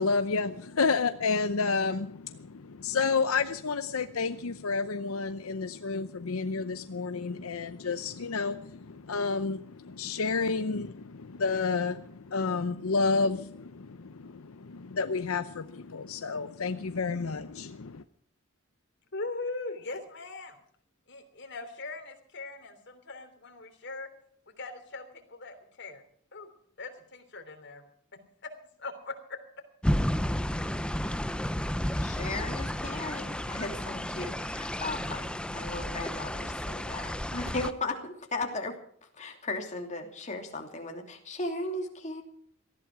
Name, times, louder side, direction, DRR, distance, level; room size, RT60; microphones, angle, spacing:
voice 1, 0.0-18.0, left 4 dB, 85° left, 11 dB, 0.7 m, -30 dB
voice 2, 19.1-20.6 21.1-24.1 24.5-26.0 26.3-26.5 26.8-27.8 28.1-28.5 28.8-29.1, left 3 dB, 55° left, 6 dB, 3.3 m, -40 dB
sound 1, 29.8-37.7, equal, 5° left, 0.6 m, -32 dB
voice 3, 32.0-38.8 39.0-42.2, left 2 dB, 35° left, 2 dB, 2.8 m, -36 dB
19.0 x 14.0 x 4.8 m, 0.62 s
head